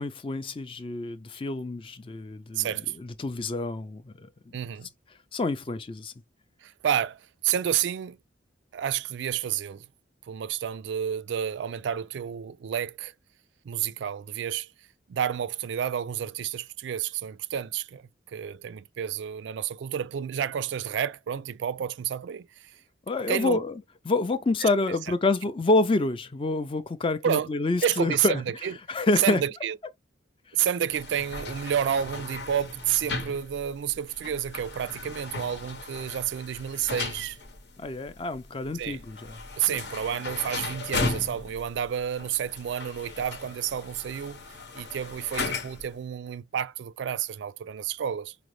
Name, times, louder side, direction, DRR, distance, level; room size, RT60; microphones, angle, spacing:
voice 1, 0.0-2.7 3.0-4.3 5.3-6.1 23.1-23.7 24.1-28.4 28.9-29.4 37.8-39.4 39.7-39.8, left 2 dB, 30° left, 0.4 m, -27 dB
voice 2, 2.6-3.0 4.5-4.9 6.6-8.2 8.7-9.9 10.3-13.1 13.6-14.7 15.1-18.0 18.3-22.7 23.3-23.6 24.6-24.7 27.2-27.5 27.8-28.7 29.2-29.8 30.5-37.4 38.7-39.0 39.6-44.4 44.8-48.4, right 9 dB, 70° right, 0.3 m, -30 dB
sound 1, 30.9-46.0, left 3 dB, 60° left, 0.9 m, -37 dB
4.9 x 2.0 x 3.1 m
head